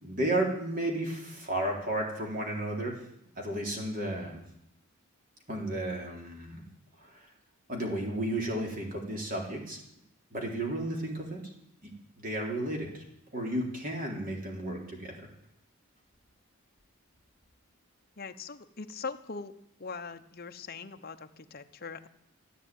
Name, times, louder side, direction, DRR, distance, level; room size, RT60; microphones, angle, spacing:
voice 1, 0.0-2.9 3.4-4.4 5.5-6.6 7.0-7.2 7.7-9.8 10.3-11.4 11.8-11.9 12.2-13.0 13.3-15.1, right 1 dB, 40° right, 0 dB, 3.8 m, -33 dB
voice 2, 18.2-19.5 19.8-22.1, left 4 dB, 45° left, 7 dB, 0.9 m, -41 dB
15.0 x 9.3 x 9.2 m, 0.76 s
head